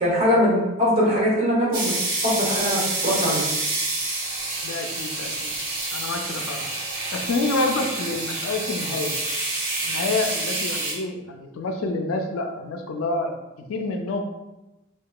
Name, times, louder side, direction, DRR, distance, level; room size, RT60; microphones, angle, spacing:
voice 1, 0.0-3.4, equal, 30° right, -5 dB, 0.8 m, -22 dB
sound 1, 1.7-10.9, right 2 dB, 85° right, 0.6 m, -28 dB
voice 2, 4.6-5.6 5.9-6.6 7.1-9.2 9.8-13.3 13.7-14.2, left 2 dB, 75° left, 4 dB, 0.3 m, -28 dB
2.8 x 2.2 x 2.2 m, 0.99 s
head